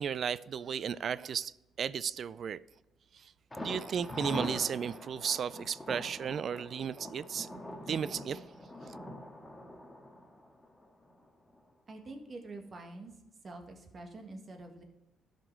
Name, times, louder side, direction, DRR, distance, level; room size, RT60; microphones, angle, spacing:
voice 1, 0.0-1.5 1.8-2.6 3.1-3.3 3.6-7.5 7.9-8.4, right 7 dB, 55° right, 0.3 m, -34 dB
Thunder, 3.5-11.3 11.6-11.7 12.1-12.2, left 1 dB, 10° left, 1.6 m, -43 dB
voice 2, 11.9-13.1 13.4-14.8, right 2 dB, 40° right, 1.7 m, -46 dB
13.0 x 5.2 x 4.6 m
cardioid pair, 90°, 0 cm